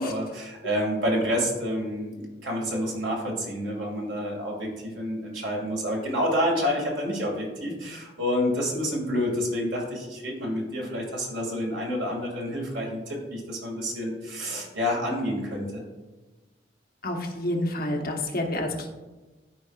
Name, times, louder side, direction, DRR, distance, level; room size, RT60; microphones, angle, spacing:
voice 1, 0.0-15.8, equal, 85° right, -1 dB, 2.1 m, -28 dB
voice 2, 17.0-18.9, left 1 dB, 55° left, 2 dB, 1.0 m, -28 dB
13.5 x 4.8 x 2.4 m, 1.2 s
head